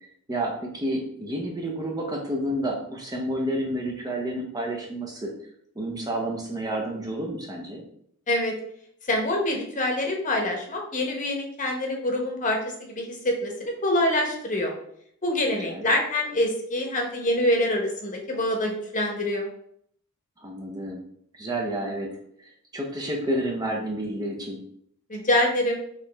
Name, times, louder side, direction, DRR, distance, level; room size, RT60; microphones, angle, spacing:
voice 1, 0.3-5.3 5.8-7.8 15.5-15.9 20.4-21.0 21.3-24.6, right 1 dB, 15° right, 0 dB, 0.6 m, -30 dB
voice 2, 9.1-14.7 15.2-19.5 25.1-25.8, left 1 dB, 35° left, 1 dB, 0.9 m, -25 dB
4.9 x 2.8 x 3.3 m, 0.69 s
head